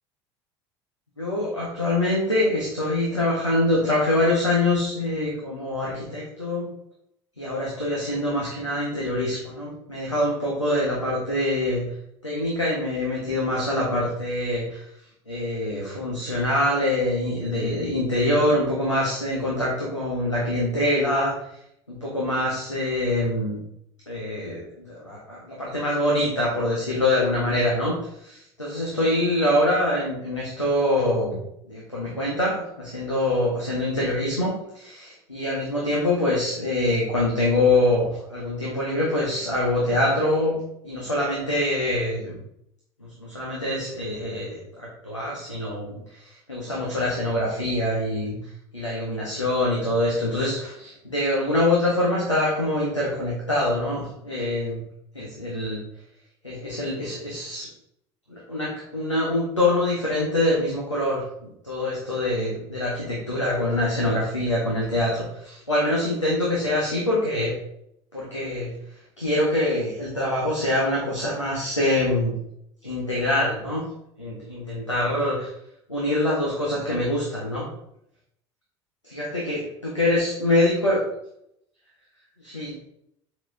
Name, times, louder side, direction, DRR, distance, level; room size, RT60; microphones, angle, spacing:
voice 1, 1.2-6.7 7.4-11.8 12.2-14.9 15.3-21.3 21.9-23.6 24.1-24.6 24.9-27.9 28.2-31.4 31.7-40.6 40.8-42.4 43.0-48.4 48.7-54.8 55.1-55.8 56.4-57.7 58.3-61.2 61.6-67.5 68.1-68.7 69.2-72.3 72.8-73.8 74.2-75.5 75.9-77.7 79.0-81.0 82.4-82.7, left 1 dB, 90° left, -5 dB, 1.6 m, -24 dB
7.6 x 6.0 x 3.5 m, 0.74 s
figure-of-eight pair, 65°, 15 cm